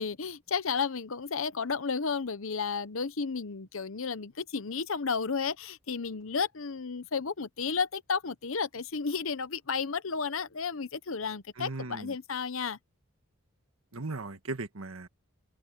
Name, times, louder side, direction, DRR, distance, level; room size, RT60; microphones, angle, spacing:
voice 1, 0.0-12.8, left 5 dB, 70° left, 0.9 m, -32 dB
voice 2, 11.6-12.1 13.9-15.1, right 2 dB, 75° right, 1.6 m, -37 dB
open air
head